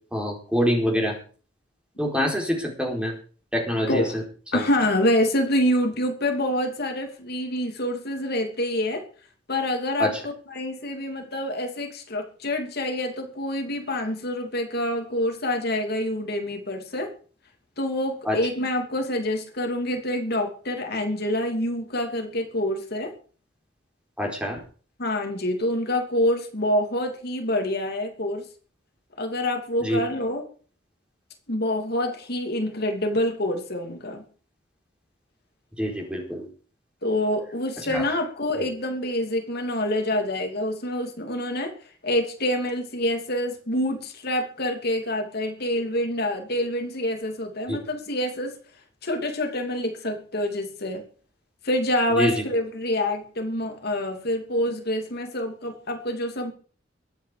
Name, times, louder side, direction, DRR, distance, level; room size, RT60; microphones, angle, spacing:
voice 1, 0.1-1.2 2.0-3.1 3.5-4.2 4.5-4.7 10.0-10.2 18.3-18.4 24.2-24.6 29.8-30.0 35.8-36.5 37.9-38.0 38.6-38.7 47.7-47.8 52.2-52.3, equal, 5° right, 1 dB, 4.3 m, -25 dB
voice 2, 3.9-4.2 4.5-9.0 9.5-17.1 17.8-23.1 25.0-28.5 29.2-30.5 31.5-34.2 37.0-41.7 42.0-48.6 49.0-51.0 51.6-56.5, left 1 dB, 55° left, 3 dB, 2.8 m, -26 dB
22.5 x 9.2 x 5.1 m, 0.41 s
head